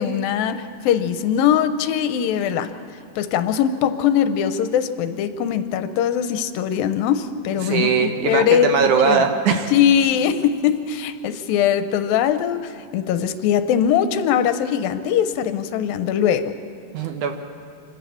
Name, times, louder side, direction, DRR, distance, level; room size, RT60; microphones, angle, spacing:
voice 1, 0.0-2.7 3.2-9.3 9.7-16.5, left 9 dB, 90° left, 10 dB, 2.6 m, -21 dB
voice 2, 7.6-9.7 16.9-17.4, right 6 dB, 65° right, 5 dB, 2.4 m, -20 dB
26.5 x 13.0 x 8.5 m, 2.2 s
omnidirectional pair, 4.1 m